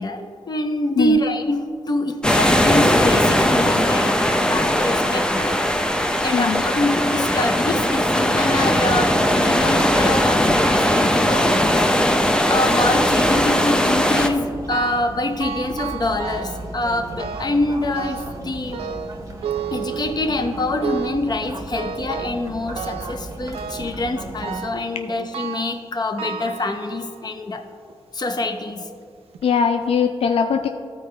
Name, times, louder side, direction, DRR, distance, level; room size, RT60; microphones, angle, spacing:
voice 1, 0.0-5.6 6.2-11.9 12.5-18.8 19.7-27.6 28.1-28.9, left 2 dB, 45° left, 7 dB, 0.8 m, -25 dB
sound 1, 2.2-14.3, equal, 10° left, 0.6 m, -19 dB
voice 2, 6.3-6.6 29.4-30.7, left 6 dB, 75° left, 7 dB, 0.4 m, -20 dB
sound 2, 8.2-24.6, right 2 dB, 35° right, 1.0 m, -36 dB
sound 3, 14.7-15.1 15.4-16.7 17.2-17.6 17.9-18.4 18.7-20.4 20.8-21.3 21.7-22.4 22.8-23.2 23.5-24.0 24.4-24.9 25.3-25.8 26.2-27.2 27.9-28.0 28.8-28.9 29.3-29.4, right 8 dB, 80° right, 0.4 m, -32 dB
13.0 x 4.6 x 3.3 m, 2.1 s
cardioid pair, 70°, 10 cm